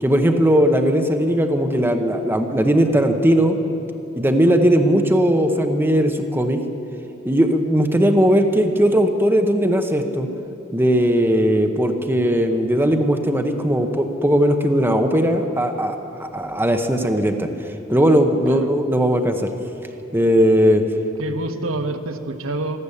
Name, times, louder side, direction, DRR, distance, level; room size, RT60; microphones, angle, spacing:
voice 1, 0.0-3.6 4.1-6.6 7.2-10.3 10.7-17.5 17.9-19.5 20.1-20.8, equal, 10° right, 5 dB, 0.9 m, -18 dB
voice 2, 21.2-22.8, right 2 dB, 85° right, 6 dB, 1.1 m, -27 dB
13.0 x 12.0 x 8.5 m, 2.8 s
head